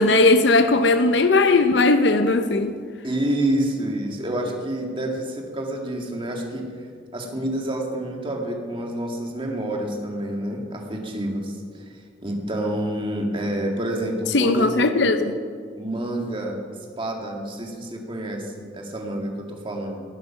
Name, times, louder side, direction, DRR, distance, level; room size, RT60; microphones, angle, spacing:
voice 1, 0.0-2.7 14.3-15.3, left 3 dB, 65° left, 0.7 m, -18 dB
voice 2, 3.0-6.7 7.1-11.9 12.2-15.1 15.8-16.6 17.0-20.0, right 1 dB, 30° right, 2.1 m, -28 dB
18.5 x 9.4 x 5.9 m
head